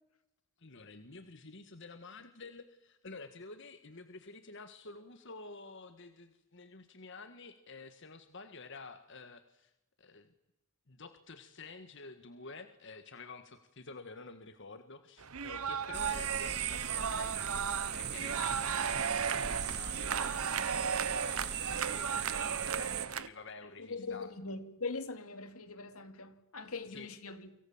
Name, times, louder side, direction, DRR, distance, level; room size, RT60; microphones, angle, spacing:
voice 1, 0.6-9.7 10.0-10.3 10.9-24.3 26.9-27.1, left 3 dB, 55° left, 1.6 m, -50 dB
sound 1, 15.2-23.3, right 7 dB, 85° right, 1.2 m, -35 dB
sound 2, 15.9-23.1, right 8 dB, 50° right, 2.0 m, -38 dB
voice 2, 23.8-27.5, left 3 dB, 85° left, 2.7 m, -41 dB
29.0 x 26.0 x 7.3 m
head